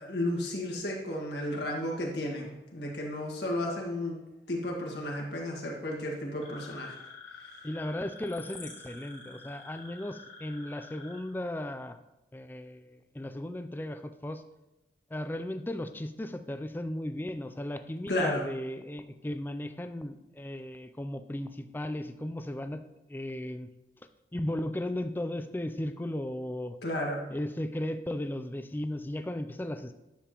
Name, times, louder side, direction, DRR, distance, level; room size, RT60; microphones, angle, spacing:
voice 1, 0.0-4.2 4.5-7.0 18.1-18.4 26.8-27.2, left 1 dB, 65° left, -1 dB, 1.8 m, -33 dB
sound 1, 6.4-11.2, left 4 dB, 85° left, 2.4 m, -48 dB
voice 2, 7.6-12.0 12.3-14.4 15.1-22.8 23.1-23.7 24.3-26.8 27.3-29.9, left 1 dB, 10° left, 9 dB, 0.3 m, -36 dB
10.0 x 6.9 x 3.0 m, 0.96 s
head